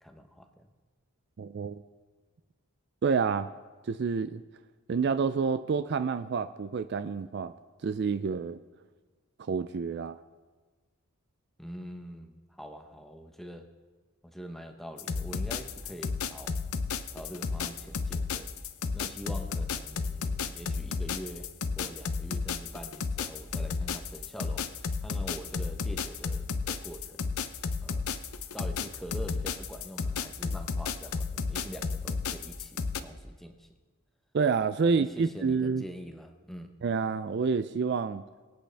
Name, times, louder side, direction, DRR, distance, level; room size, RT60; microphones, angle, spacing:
voice 1, 0.0-0.7 11.6-13.7 14.2-16.6 17.1-18.5 18.9-21.5 21.8-24.7 25.0-27.3 27.8-28.1 28.5-33.7 34.8-36.7, equal, ahead, 5 dB, 0.8 m, -44 dB
voice 2, 1.4-1.8 3.0-3.5 3.9-4.4 4.9-7.5 7.8-8.6 9.4-10.2 34.3-35.8 36.8-38.2, right 5 dB, 50° right, 12 dB, 0.3 m, -28 dB
sound 1, 15.0-33.0, left 5 dB, 75° left, 0.6 m, -32 dB
23.5 x 8.8 x 3.4 m, 1.4 s
head